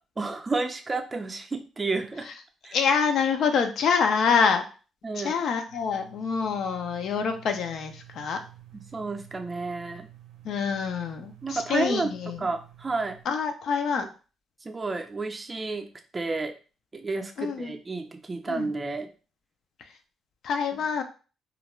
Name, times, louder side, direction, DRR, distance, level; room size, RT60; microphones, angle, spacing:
voice 1, 0.2-2.3 2.6-2.8 5.0-5.3 8.7-10.1 11.4-12.1 12.4-13.2 14.6-15.9 16.1-16.5 16.9-19.1 20.7-20.8, right 3 dB, 25° right, 4 dB, 0.4 m, -31 dB
voice 2, 2.7-4.7 5.1-8.4 10.4-12.5 13.3-14.0 17.4-17.8 18.5-18.7 20.4-21.0, left 6 dB, 70° left, 6 dB, 0.4 m, -26 dB
sound 1, 5.7-13.2, right 14 dB, 80° right, 0.5 m, -51 dB
2.4 x 2.1 x 3.0 m, 0.35 s
cardioid pair, 90°, 0 cm